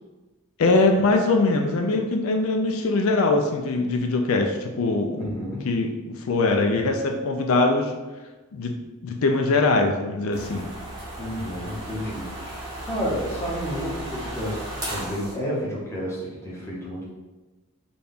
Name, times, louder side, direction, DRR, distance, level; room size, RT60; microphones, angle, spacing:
voice 1, 0.6-7.9 8.5-8.8 9.0-10.7, left 3 dB, 80° left, 3 dB, 0.4 m, -22 dB
voice 2, 5.2-5.7 11.2-14.6 14.9-17.0, equal, 15° left, -6 dB, 0.8 m, -31 dB
sound 1, 10.3-15.3, right 1 dB, 20° right, 0.9 m, -35 dB
4.0 x 2.3 x 3.5 m, 1.2 s
head